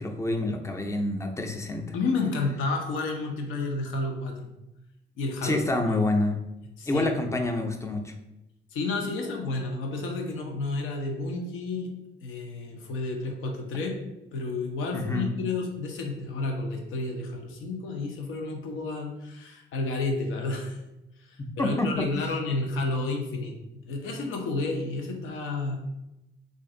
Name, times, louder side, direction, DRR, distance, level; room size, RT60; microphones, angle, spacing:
voice 1, 0.0-2.0 5.4-6.4 6.9-8.1 14.9-15.3 21.4-22.3, left 2 dB, 15° left, 4 dB, 0.5 m, -28 dB
voice 2, 1.9-4.5 5.2-5.6 6.8-7.1 8.7-11.9 12.2-14.0 14.3-20.8 21.2-25.8, left 3 dB, 85° left, 2 dB, 0.7 m, -31 dB
3.2 x 2.6 x 3.7 m, 0.92 s
cardioid pair, 90°, 20 cm